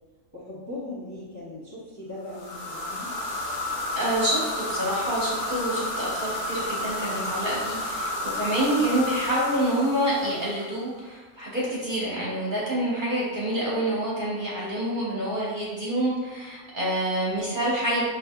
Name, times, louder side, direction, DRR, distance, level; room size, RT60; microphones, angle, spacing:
voice 1, 0.3-3.1, left 2 dB, 15° left, -9 dB, 0.6 m, -39 dB
sound 1, 2.3-10.8, left 1 dB, 80° left, 1.2 m, -31 dB
voice 2, 3.9-18.0, right 1 dB, 40° right, -6 dB, 0.9 m, -27 dB
5.6 x 2.4 x 2.2 m, 1.3 s
omnidirectional pair, 1.5 m